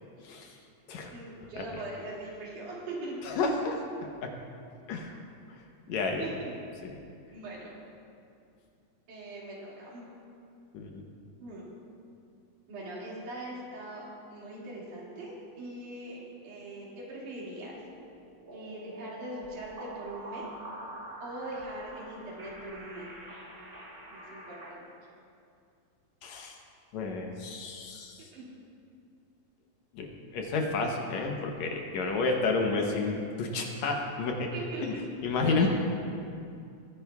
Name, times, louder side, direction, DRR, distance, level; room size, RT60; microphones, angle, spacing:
voice 1, 0.2-0.6 0.9-1.1 1.6-1.7 3.2-3.8 4.2-4.3 4.9-5.1 5.9-6.3 10.7-11.0 26.2-26.6 26.9-28.3 29.9-34.5 34.8-34.9 35.2-35.8, left 3 dB, 70° left, 2 dB, 2.0 m, -30 dB
voice 2, 1.1-3.2 6.2-6.3 7.3-7.8 9.1-10.1 11.4-11.7 12.7-17.8 18.5-20.5 21.2-23.1 24.1-24.8 28.2-28.4 34.5-35.1 35.4-35.8, right 1 dB, 80° right, -6 dB, 3.8 m, -41 dB
sound 1, 17.7-24.7, right 2 dB, 40° right, 0.8 m, -46 dB
20.0 x 10.5 x 2.4 m, 2.4 s
omnidirectional pair, 3.5 m